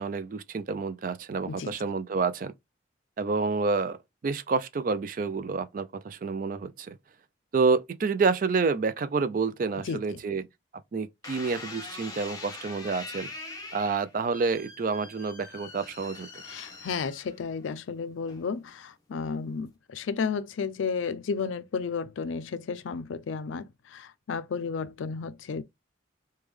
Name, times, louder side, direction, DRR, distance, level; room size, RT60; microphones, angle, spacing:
voice 1, 0.0-2.5 3.2-4.0 4.2-7.0 7.5-10.5 10.9-13.3 13.7-16.3, right 4 dB, 45° right, 0.3 m, -28 dB
voice 2, 9.7-10.2 16.4-25.6, left 5 dB, 80° left, 0.4 m, -33 dB
sound 1, 11.2-17.6 18.3-18.7, left 3 dB, 20° left, 0.7 m, -43 dB
3.5 x 2.2 x 3.1 m
head